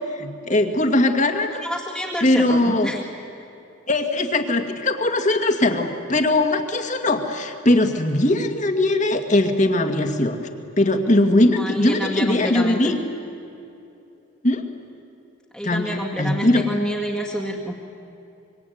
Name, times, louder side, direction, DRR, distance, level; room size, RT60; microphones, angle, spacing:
voice 1, 0.2-1.6 2.2-2.9 3.9-10.4 10.8-13.0 14.4-14.6 15.6-15.9 16.2-16.6, left 1 dB, 40° left, 5 dB, 2.1 m, -20 dB
voice 2, 1.6-3.0 11.6-13.0 15.5-17.7, equal, ahead, -4 dB, 2.0 m, -28 dB
25.0 x 24.0 x 9.4 m, 2.8 s
head